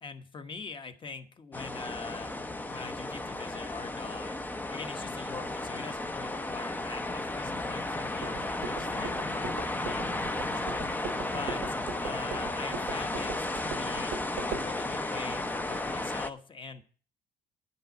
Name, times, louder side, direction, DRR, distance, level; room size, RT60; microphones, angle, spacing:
voice 1, 0.0-10.9 11.3-14.1 14.4-16.8, left 4 dB, 30° left, 8 dB, 1.2 m, -43 dB
sound 1, 1.5-16.3, left 2 dB, 10° left, 0.7 m, -34 dB
sound 2, 8.2-14.7, right 7 dB, 85° right, 1.6 m, -41 dB
10.0 x 5.6 x 7.9 m, 0.41 s
cardioid pair, 110°, 17 cm